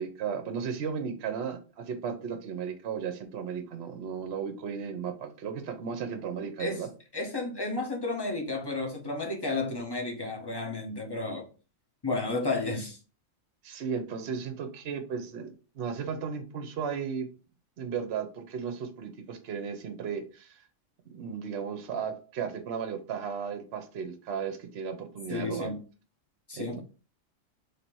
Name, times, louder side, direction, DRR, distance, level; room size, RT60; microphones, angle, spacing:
voice 1, 0.0-6.9 13.6-17.3 17.8-20.6 21.1-25.7 26.5-26.8, right 6 dB, 60° right, 0.9 m, -35 dB
voice 2, 7.1-11.5 12.0-13.0 25.3-25.8 26.5-26.8, left 2 dB, 20° left, 0.8 m, -32 dB
3.3 x 2.8 x 4.5 m
omnidirectional pair, 1.4 m